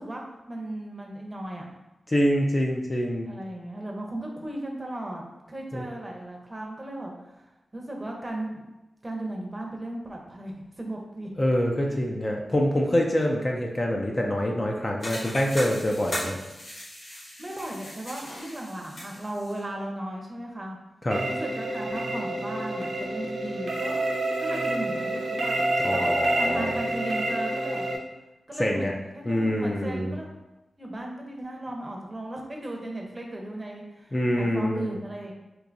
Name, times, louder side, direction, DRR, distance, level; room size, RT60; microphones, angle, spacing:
voice 1, 0.0-1.7 3.3-5.2 5.5-7.4 7.7-8.7 9.0-11.3 11.9-12.0 17.4-20.8 21.3-24.0 24.4-27.9 28.5-30.4 30.8-35.3, right 1 dB, 20° right, 0 dB, 0.7 m, -36 dB
voice 2, 2.1-3.3 5.7-5.8 11.4-16.4 21.0-21.2 25.8-26.7 28.6-28.9 29.3-30.2 34.1-35.0, equal, 25° left, 0 dB, 0.4 m, -25 dB
sound 1, 15.0-19.6, equal, 65° left, 1.4 m, -38 dB
sound 2, 21.1-28.0, right 1 dB, 60° right, 0.6 m, -28 dB
4.4 x 2.7 x 2.5 m, 1.0 s
wide cardioid pair, 110°, 0 cm